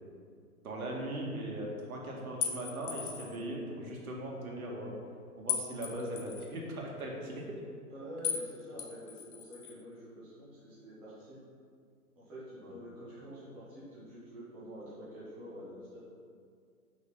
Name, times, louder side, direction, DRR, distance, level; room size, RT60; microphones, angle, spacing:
voice 1, 0.6-5.0 5.4-7.6 12.6-12.7, right 1 dB, 65° right, -2 dB, 2.1 m, -39 dB
sound 1, 2.4-3.4 5.5-6.5 8.2-8.5 8.8-9.7, left 8 dB, 35° left, 0.9 m, -37 dB
voice 2, 7.9-11.4 12.2-16.0, equal, 5° right, -11 dB, 0.5 m, -47 dB
6.0 x 5.5 x 5.7 m, 2.2 s
hypercardioid pair, 145°, 46 cm